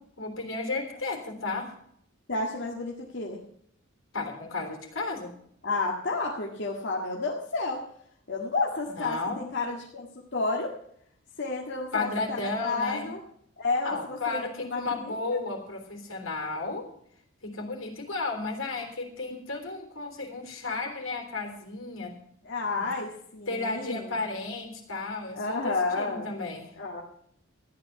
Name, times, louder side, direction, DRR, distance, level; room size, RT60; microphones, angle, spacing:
voice 1, 0.0-1.7 4.1-5.3 9.0-9.4 11.9-13.1 13.8-16.9 17.4-22.2 22.7-22.9 23.5-26.7, left 3 dB, 80° left, 3 dB, 3.5 m, -33 dB
voice 2, 2.3-3.4 5.6-7.9 8.3-10.8 11.4-13.2 13.6-15.4 22.4-24.2 25.3-26.3 26.8-27.0, left 3 dB, 60° left, -2 dB, 1.8 m, -31 dB
14.0 x 10.5 x 5.9 m, 0.68 s
head